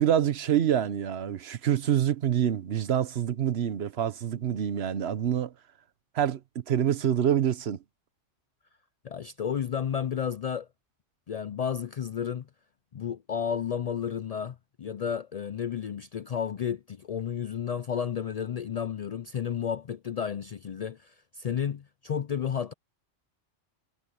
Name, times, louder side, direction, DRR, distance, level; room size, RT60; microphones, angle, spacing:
voice 1, 0.0-5.5 6.1-6.4 6.7-7.8, right 10 dB, 60° right, 1.1 m, -26 dB
voice 2, 9.0-10.7 11.3-12.5 12.9-22.7, left 8 dB, 80° left, 0.3 m, -32 dB
omnidirectional pair, 1.2 m